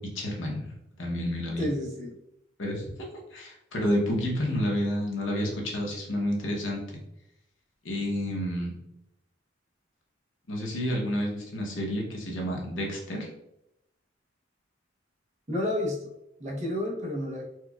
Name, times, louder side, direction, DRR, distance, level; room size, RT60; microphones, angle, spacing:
voice 1, 0.1-1.7 2.6-7.0 7.8-8.7 10.5-13.3, equal, 75° left, -1 dB, 0.9 m, -30 dB
voice 2, 1.6-2.1 15.5-16.0 16.4-17.4, left 1 dB, 40° right, -2 dB, 0.8 m, -30 dB
4.4 x 2.2 x 2.3 m, 0.84 s
head